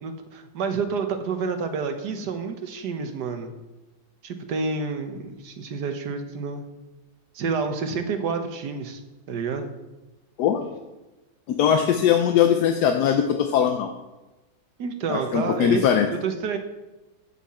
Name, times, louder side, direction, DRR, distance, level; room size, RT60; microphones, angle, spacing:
voice 1, 0.0-3.5 4.2-6.7 7.3-9.0 9.3-9.7 14.8-16.6, right 5 dB, 70° right, 6 dB, 1.5 m, -29 dB
voice 2, 11.5-13.9 15.1-16.1, left 8 dB, 70° left, 5 dB, 1.2 m, -20 dB
15.0 x 5.8 x 4.2 m, 1.1 s
omnidirectional pair, 1.9 m